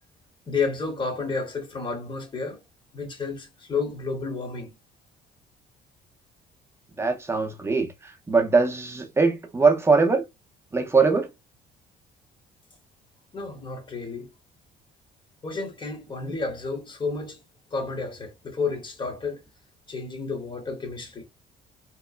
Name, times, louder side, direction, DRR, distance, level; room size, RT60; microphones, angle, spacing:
voice 1, 0.5-2.6 2.9-4.7 13.3-14.3 15.4-17.4 17.7-19.4 19.9-21.3, left 4 dB, 30° left, 1.0 m, -31 dB
voice 2, 7.0-10.2 10.7-11.3, right 4 dB, 15° right, 0.6 m, -21 dB
2.9 x 2.1 x 2.3 m
cardioid pair, 110°, 17 cm